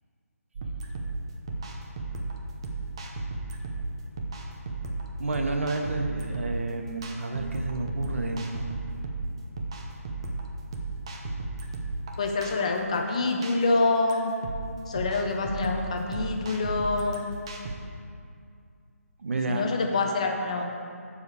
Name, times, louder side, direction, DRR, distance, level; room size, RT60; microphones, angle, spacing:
sound 1, 0.5-17.8, right 2 dB, 20° right, 0.6 m, -35 dB
voice 1, 5.2-8.6 19.2-19.6, right 2 dB, 55° right, 4 dB, 1.0 m, -30 dB
voice 2, 12.2-14.3 14.9-17.3 19.5-20.6, left 3 dB, 25° left, 2 dB, 0.6 m, -26 dB
14.0 x 4.9 x 4.8 m, 2.4 s
hypercardioid pair, 175°, 8 cm